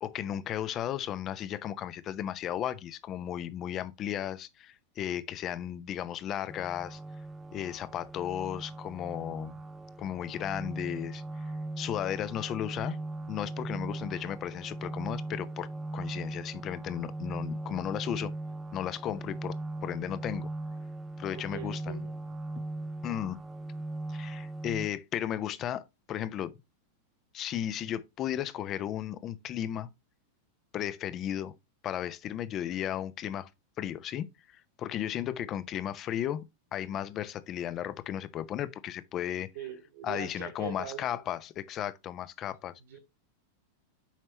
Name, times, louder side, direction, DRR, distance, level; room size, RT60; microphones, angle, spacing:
voice 1, 0.0-7.0 7.5-9.5 10.0-13.0 13.3-18.3 18.7-19.6 19.8-20.5 21.2-22.1 23.0-23.4 24.1-26.6 27.3-29.9 30.7-31.5 31.8-33.5 33.8-39.5 40.0-42.7, left 11 dB, 30° left, 0.6 m, -35 dB
sound 1, 6.5-24.9, right 2 dB, 10° right, 0.6 m, -39 dB
voice 2, 21.3-22.2 39.5-41.2 42.9-43.0, right 9 dB, 55° right, 1.4 m, -42 dB
7.3 x 5.4 x 2.8 m
figure-of-eight pair, 90°, 0 cm